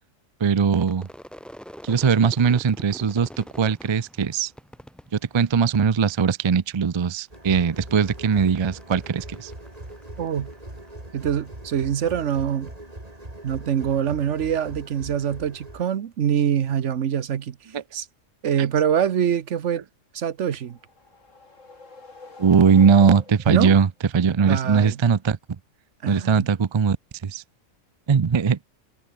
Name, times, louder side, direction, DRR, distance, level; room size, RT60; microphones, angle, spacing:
voice 1, 0.4-1.1 1.8-4.5 5.3-9.5 17.7-17.8 18.6-18.7 22.4-25.4 26.1-27.0 27.2-27.4 28.1-28.7, right 6 dB, 45° right, 0.3 m, -20 dB
Crowd / Fireworks, 0.7-6.1 6.4-7.1 7.3-10.9, equal, ahead, 3.4 m, -45 dB
sound 1, 7.3-15.8, right 1 dB, 30° right, 4.5 m, -41 dB
voice 2, 10.2-10.5 11.1-12.7 13.4-17.6 17.9-18.0 18.4-19.8 20.1-20.8 23.5-23.7 24.4-25.0 26.0-26.5, right 9 dB, 65° right, 1.2 m, -24 dB
sound 2, 20.6-23.7, left 3 dB, 75° left, 3.6 m, -45 dB
omnidirectional pair, 1.3 m